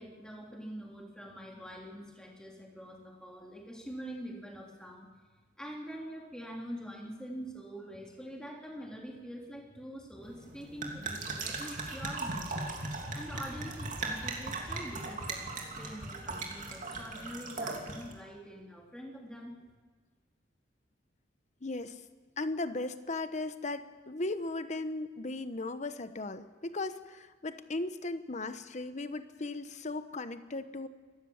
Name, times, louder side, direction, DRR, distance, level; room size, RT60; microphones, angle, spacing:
voice 1, 0.0-5.1 5.6-12.6 13.1-19.6, equal, 5° left, -1 dB, 3.3 m, -45 dB
sound 1, 10.2-18.1, right 3 dB, 45° right, 3.0 m, -38 dB
voice 2, 21.6-22.0 22.4-30.9, left 2 dB, 40° left, 11 dB, 1.0 m, -37 dB
26.5 x 15.0 x 7.3 m, 1.4 s
head